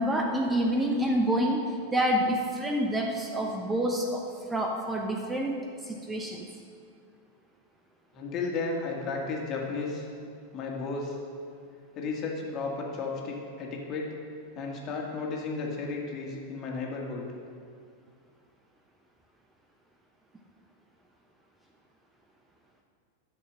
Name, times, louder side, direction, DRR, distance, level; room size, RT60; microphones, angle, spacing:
voice 1, 0.0-4.2 4.5-6.5, equal, 10° right, 1 dB, 0.9 m, -28 dB
voice 2, 8.1-10.1 10.5-11.2 12.0-14.1 14.6-17.3, left 4 dB, 35° left, -1 dB, 2.0 m, -33 dB
11.5 x 6.5 x 6.4 m, 2.3 s
figure-of-eight pair, 90°, 0 cm